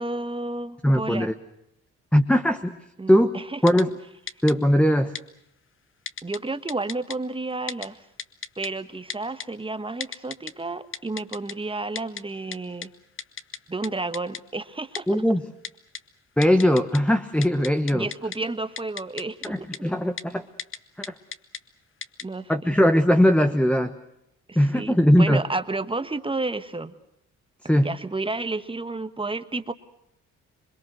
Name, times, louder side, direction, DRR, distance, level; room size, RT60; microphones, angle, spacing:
voice 1, 0.0-1.3 3.0-3.6 6.2-8.0 8.6-12.9 13.7-15.2 17.9-19.6 22.2-22.5 24.5-26.9 27.8-29.7, right 2 dB, 15° right, 11 dB, 1.4 m, -31 dB
voice 2, 0.8-1.3 2.1-2.8 3.1-3.3 3.6-3.9 4.4-5.1 15.1-15.4 16.4-18.1 19.4-20.5 22.5-24.0 24.5-25.4 27.7-27.9, equal, 5° left, 8 dB, 1.2 m, -20 dB
Typing, 3.7-3.8 4.3-4.5 5.2-5.3 6.1-6.4 6.7-7.2 7.7-7.9 8.2-8.7 9.1-9.5 10.0-10.5 10.9-11.5 12.0-12.2 12.5-12.6 12.8-12.9 13.2-13.6 13.8-13.9 14.1-14.4 14.9-15.0 15.6-16.0 16.4-17.0 17.3-18.4 18.8-19.5 19.7-19.8 20.2-20.3 20.6-20.8 21.0-21.6 22.0-22.2, left 7 dB, 40° left, 1.2 m, -34 dB
27.0 x 22.0 x 6.3 m, 0.82 s
cardioid pair, 90°, 30 cm